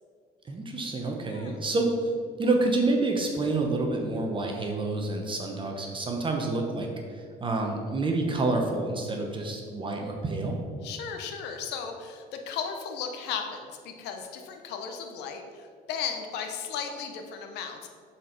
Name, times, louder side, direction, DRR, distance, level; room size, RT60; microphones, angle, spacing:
voice 1, 0.4-2.1 2.4-10.6, right 2 dB, 30° right, 2 dB, 0.9 m, -28 dB
voice 2, 1.3-1.6 10.8-17.9, left 6 dB, 85° left, 5 dB, 0.8 m, -36 dB
7.4 x 4.4 x 5.1 m, 2.1 s
cardioid pair, 110°, 17 cm